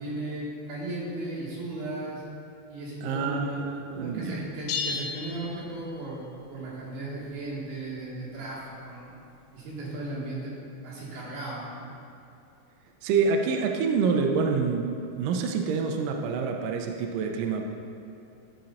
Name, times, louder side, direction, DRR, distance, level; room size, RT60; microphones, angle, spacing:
voice 1, 0.0-2.2 2.7-9.1 9.5-10.5 10.8-11.8, right 2 dB, 70° right, -7 dB, 4.0 m, -36 dB
voice 2, 3.0-4.5 13.0-17.6, right 5 dB, 90° right, 2 dB, 1.9 m, -27 dB
sound 1, 4.7-6.3, left 5 dB, 80° left, 2.7 m, -34 dB
13.5 x 5.2 x 4.2 m, 2.8 s
omnidirectional pair, 4.9 m